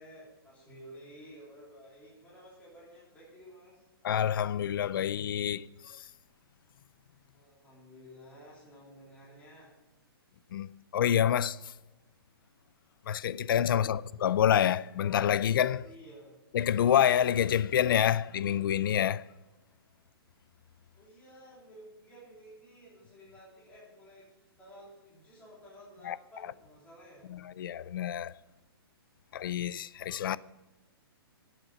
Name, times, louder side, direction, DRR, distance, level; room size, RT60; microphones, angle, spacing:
voice 1, 0.0-3.8 7.3-9.7 13.7-14.0 15.8-16.4 20.9-24.3 24.6-27.3, equal, 10° left, 3.2 m, -53 dB
voice 2, 4.0-5.6 10.5-11.6 13.1-15.9 16.5-19.2 26.1-26.2 27.3-28.3 29.3-30.4, left 10 dB, 60° left, 0.4 m, -27 dB
11.5 x 8.0 x 7.1 m
hypercardioid pair, 160°, 13 cm